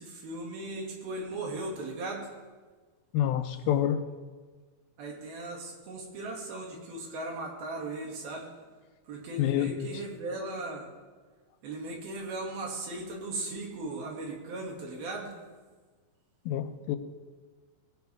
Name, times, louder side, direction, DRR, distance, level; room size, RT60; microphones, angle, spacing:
voice 1, 0.0-2.3 5.0-8.5 9.1-10.9 11.6-15.3, right 2 dB, 80° right, 0 dB, 4.2 m, -37 dB
voice 2, 3.1-4.1 9.4-9.9 16.5-17.0, left 10 dB, 85° left, 9 dB, 2.7 m, -27 dB
19.5 x 15.5 x 3.6 m, 1.4 s
omnidirectional pair, 4.3 m